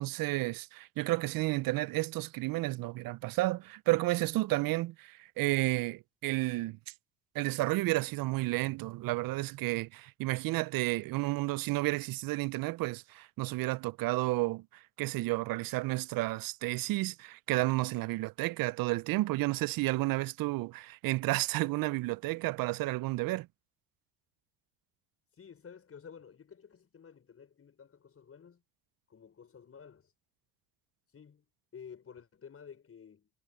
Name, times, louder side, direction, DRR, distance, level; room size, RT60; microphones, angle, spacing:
voice 1, 0.0-6.8 7.3-14.7 15.0-23.5, right 20 dB, 65° right, 0.5 m, -31 dB
voice 2, 25.4-28.6 29.1-30.1 31.1-31.4 31.7-33.3, left 7 dB, 35° left, 5.4 m, -52 dB
cardioid pair, 90°, 38 cm